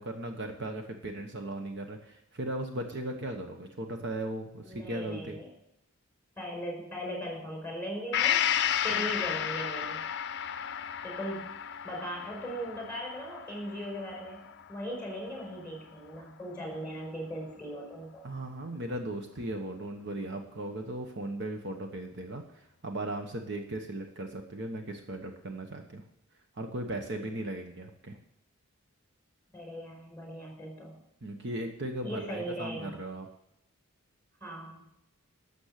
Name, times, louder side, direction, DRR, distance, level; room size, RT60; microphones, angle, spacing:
voice 1, 0.0-5.4 8.9-9.0 18.2-22.4 22.8-26.0 26.6-28.2 31.2-33.3, right 1 dB, 50° right, 4 dB, 1.1 m, -37 dB
voice 2, 4.6-5.5 6.4-8.4 8.8-10.0 11.0-11.5 11.8-14.4 14.7-18.2 29.5-30.9 32.0-32.9 34.4-34.9, equal, 5° left, 1 dB, 4.9 m, -38 dB
Gong, 8.1-15.8 16.2-16.3, left 10 dB, 50° left, 0.6 m, -33 dB
12.0 x 7.2 x 6.6 m, 0.81 s
head